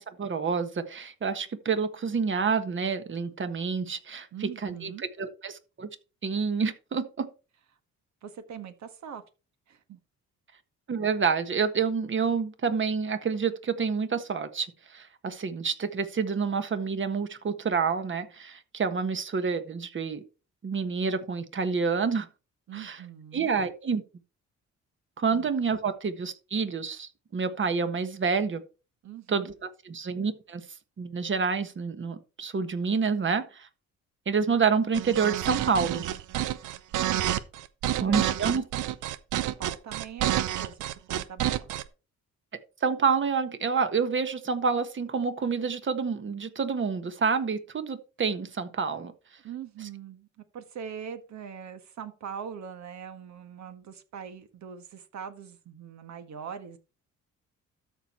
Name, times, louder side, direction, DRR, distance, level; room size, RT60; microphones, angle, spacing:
voice 1, 0.0-4.9 5.2-5.9 6.2-7.3 10.9-20.2 20.6-22.3 22.7-23.0 23.3-24.0 25.2-28.6 29.3-30.6 31.0-33.7 34.3-36.0 38.0-38.6 42.8-49.1, right 5 dB, 40° right, 1.5 m, -28 dB
voice 2, 4.3-5.0 8.2-9.2 9.7-10.0 22.7-23.6 25.3-25.5 29.0-29.5 37.0-37.4 37.8-38.2 38.5-38.6 39.4-41.7 49.4-56.8, right 8 dB, 65° right, 1.7 m, -42 dB
sound 1, 34.9-41.8, right 12 dB, 85° right, 0.7 m, -29 dB
13.0 x 4.6 x 4.4 m
cardioid pair, 90°, 30 cm